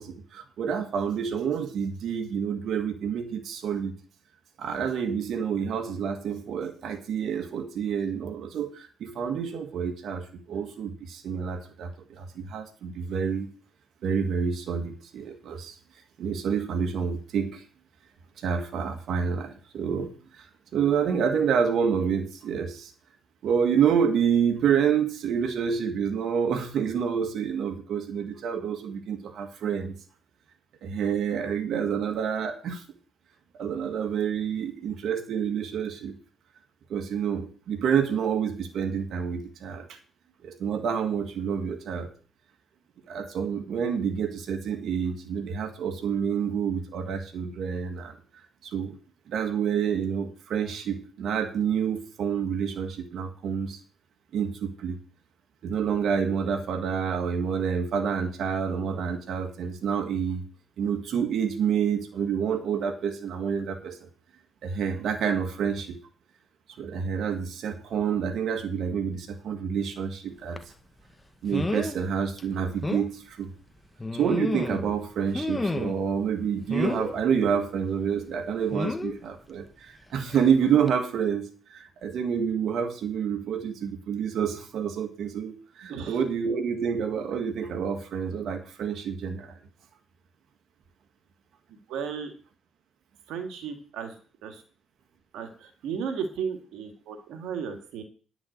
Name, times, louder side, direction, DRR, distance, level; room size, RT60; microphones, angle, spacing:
voice 1, 0.0-3.9 4.6-13.5 14.0-15.8 16.2-17.6 18.4-20.5 20.7-22.9 23.4-29.9 30.8-32.8 33.5-36.1 36.9-40.0 40.4-42.1 43.1-48.2 48.6-49.0 49.3-53.8 54.3-55.0 55.6-60.4 60.8-64.1 64.6-66.0 66.8-70.6 71.4-73.5 74.1-89.6, right 7 dB, 70° right, 6 dB, 1.8 m, -28 dB
sound 1, 70.6-70.7 71.5-72.0 72.4-72.5 72.8-73.1 74.0-74.9 75.3-76.1 76.7-77.1 78.7-79.1 80.3-80.5 80.9-81.0, left 2 dB, 20° left, 1.2 m, -30 dB
voice 2, 91.9-92.3 93.3-94.1 94.4-94.6 95.3-98.0, right 6 dB, 90° right, 5 dB, 1.8 m, -34 dB
10.0 x 6.0 x 8.0 m, 0.40 s
cardioid pair, 90°, 0 cm